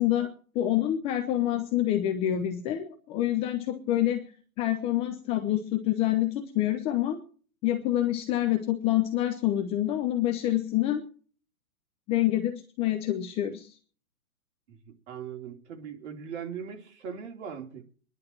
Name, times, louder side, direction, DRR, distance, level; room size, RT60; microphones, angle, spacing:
voice 1, 0.0-4.3 4.6-7.2 7.6-11.0 12.1-13.8, left 13 dB, 15° left, 6 dB, 0.6 m, -27 dB
voice 2, 14.7-17.9, right 7 dB, 50° right, 2 dB, 3.3 m, -40 dB
23.5 x 11.0 x 4.5 m, 0.44 s
hypercardioid pair, 140°, 44 cm